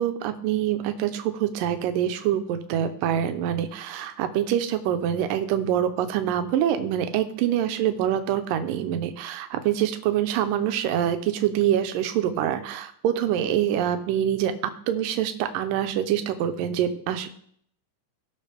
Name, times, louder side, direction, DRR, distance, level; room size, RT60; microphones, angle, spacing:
voice 1, 0.0-17.3, right 10 dB, 75° right, 8 dB, 2.4 m, -25 dB
18.0 x 6.3 x 3.4 m, 0.63 s
omnidirectional pair, 4.2 m